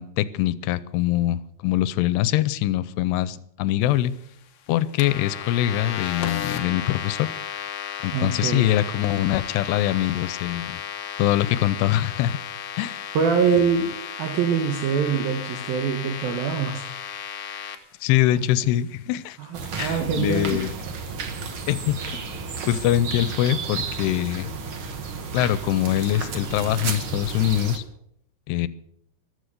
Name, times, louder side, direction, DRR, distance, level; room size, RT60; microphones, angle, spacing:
voice 1, 0.0-4.1 4.7-7.3 8.0-10.8 11.2-12.4 12.8-13.0 18.0-19.4 19.8-20.7 21.7-22.0 22.3-24.5 25.3-27.8 28.5-28.7, left 13 dB, 85° left, 17 dB, 2.8 m, -23 dB
sound 1, 5.0-17.8, left 8 dB, 65° left, 1.8 m, -34 dB
voice 2, 8.1-8.7 13.1-13.9 14.2-16.8 19.4-20.7, right 6 dB, 70° right, 5 dB, 2.9 m, -24 dB
sound 2, 19.5-27.8, right 5 dB, 90° right, 1.1 m, -32 dB
14.5 x 13.0 x 6.7 m, 0.73 s
omnidirectional pair, 4.7 m